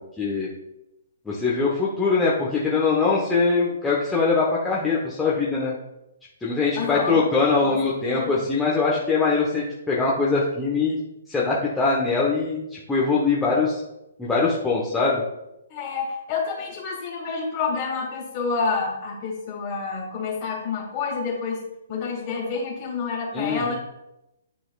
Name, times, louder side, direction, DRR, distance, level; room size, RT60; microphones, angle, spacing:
voice 1, 0.2-0.5 1.2-5.7 6.4-11.0 11.3-13.8 14.2-15.2 23.3-23.7, left 4 dB, 10° left, -6 dB, 1.0 m, -22 dB
voice 2, 6.8-7.2 7.6-8.4 15.7-21.6 21.9-23.8, left 4 dB, 35° left, -1 dB, 2.3 m, -28 dB
10.5 x 4.0 x 2.4 m, 0.88 s
figure-of-eight pair, 135°, 0 cm